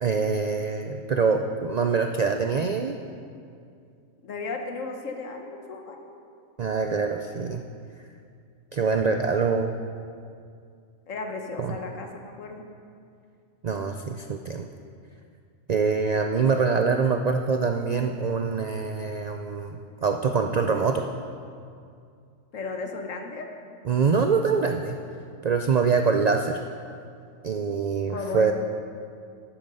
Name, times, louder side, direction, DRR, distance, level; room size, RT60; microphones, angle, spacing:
voice 1, 0.0-3.0 6.6-7.6 8.7-9.7 11.6-11.8 13.6-14.7 15.7-21.1 23.9-25.0 25.4-26.6 27.4-28.5, right 5 dB, 65° right, 5 dB, 0.4 m, -24 dB
voice 2, 4.2-6.1 11.1-12.7 22.5-23.5 28.1-28.5, left 4 dB, 80° left, 4 dB, 1.5 m, -35 dB
12.0 x 8.9 x 5.4 m, 2.4 s
omnidirectional pair, 1.3 m